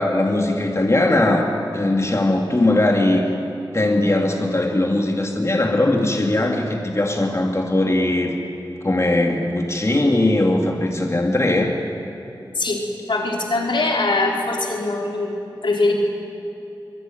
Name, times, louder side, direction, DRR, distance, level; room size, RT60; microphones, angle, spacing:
voice 1, 0.0-3.3 3.7-8.3 8.8-11.7, left 1 dB, 35° left, 1 dB, 2.9 m, -19 dB
voice 2, 13.1-15.9, left 2 dB, 85° left, -1 dB, 4.3 m, -22 dB
25.0 x 23.0 x 9.4 m, 2.9 s
wide cardioid pair, 60°, 8 cm